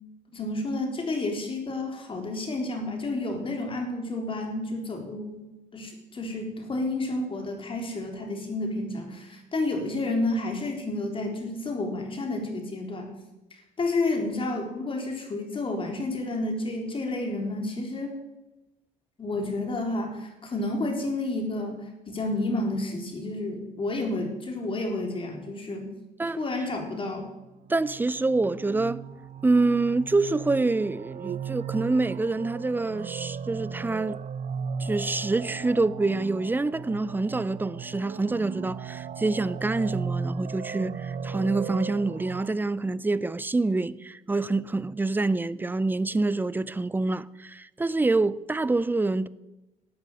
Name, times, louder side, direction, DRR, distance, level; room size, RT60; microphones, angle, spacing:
voice 1, 0.3-5.4 5.7-13.1 13.5-18.1 19.2-21.8 22.1-25.9 26.4-27.3, left 2 dB, 30° left, 3.8 m, -30 dB
voice 2, 27.7-29.0 29.4-34.2 34.8-49.3, right 3 dB, 10° right, 0.5 m, -26 dB
sound 1, 27.8-42.5, right 6 dB, 45° right, 0.8 m, -36 dB
13.0 x 8.9 x 9.1 m
cardioid pair, 110°, 17 cm